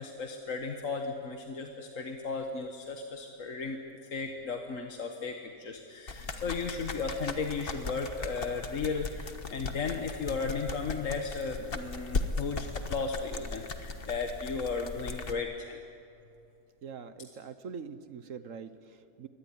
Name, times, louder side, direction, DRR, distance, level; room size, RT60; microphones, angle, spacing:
voice 1, 0.0-3.8 4.1-15.8, left 4 dB, 55° left, 3 dB, 1.7 m, -35 dB
sound 1, 6.1-15.3, left 3 dB, 40° left, 1.4 m, -38 dB
voice 2, 16.8-19.3, right 6 dB, 55° right, 12 dB, 1.2 m, -43 dB
23.5 x 18.5 x 10.0 m, 2.7 s
omnidirectional pair, 1.7 m